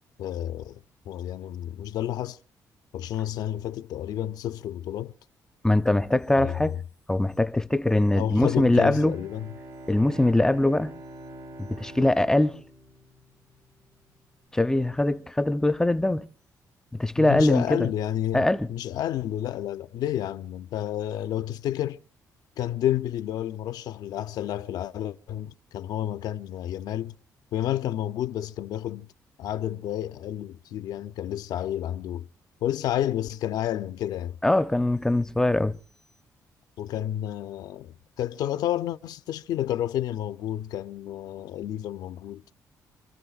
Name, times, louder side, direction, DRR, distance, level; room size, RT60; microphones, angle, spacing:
voice 1, 0.2-2.4 2.9-5.1 6.3-6.8 8.1-9.5 17.2-22.0 22.6-27.2 27.5-29.1 29.4-32.3 32.6-34.4 36.8-42.4, left 11 dB, 80° left, 0.6 m, -30 dB
voice 2, 5.6-6.8 7.1-9.2 9.9-11.0 11.6-12.6 14.5-16.3 16.9-17.9 18.3-18.7 34.4-35.8, left 1 dB, 10° left, 0.6 m, -22 dB
Bowed string instrument, 8.8-13.7, right 1 dB, 80° right, 6.7 m, -44 dB
27.5 x 14.0 x 2.4 m
cardioid pair, 105°, 7 cm